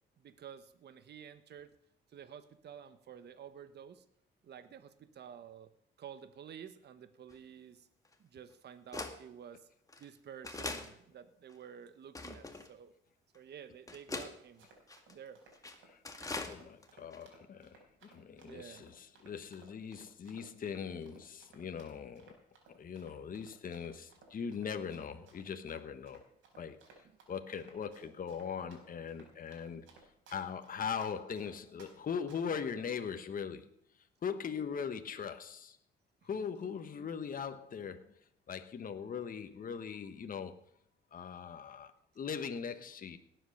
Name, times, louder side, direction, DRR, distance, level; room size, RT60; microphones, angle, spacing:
voice 1, 0.2-1.7 2.1-4.0 4.4-5.7 6.0-7.9 8.2-9.6 10.0-12.9 13.3-14.7 15.1-15.4 18.3-18.9 26.5-26.7 36.2-36.3, right 8 dB, 60° right, 11 dB, 1.1 m, -51 dB
sound 1, 7.3-7.4 8.1-8.2 8.9-9.2 9.9-10.0 10.4-10.9 11.5-11.6 12.1-12.7 13.3-13.4 13.9-14.3 14.9-15.1 15.5-15.8 16.0-16.5 16.8-16.9 17.1-17.2, left 2 dB, 15° left, 2.0 m, -41 dB
Run, 14.4-31.9 32.3-32.6, right 4 dB, 80° right, 4.5 m, -61 dB
voice 2, 16.4-22.4 22.7-26.2 26.6-29.9 30.3-33.7 34.2-35.8 36.2-38.1 38.5-40.5 41.1-43.2, left 6 dB, 45° left, 8 dB, 1.2 m, -40 dB
18.0 x 8.1 x 6.6 m, 0.70 s
cardioid pair, 90°, 20 cm